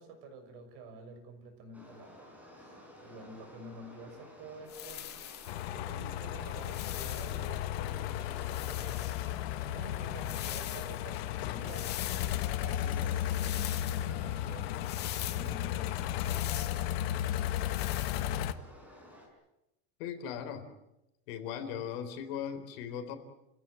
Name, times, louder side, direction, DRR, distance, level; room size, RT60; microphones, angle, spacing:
voice 1, 0.0-5.1 5.7-8.2 8.4-9.1 9.6-12.0 12.5-14.7 15.3-17.0, right 2 dB, 55° right, 6 dB, 6.3 m, -49 dB
sound 1, 1.7-19.3, left 1 dB, 5° right, 5.1 m, -53 dB
sound 2, 4.7-5.6 6.5-7.5 8.4-9.4 10.1-11.0 11.6-12.5 13.3-14.1 14.8-15.5 16.2-16.9 17.7-18.3, left 12 dB, 35° left, 1.8 m, -43 dB
sound 3, 5.5-18.5, left 12 dB, 90° left, 1.5 m, -34 dB
voice 2, 20.0-20.6 21.3-23.1, left 8 dB, 70° left, 9 dB, 3.8 m, -38 dB
30.0 x 16.0 x 9.3 m, 0.89 s
cardioid pair, 175°, 30 cm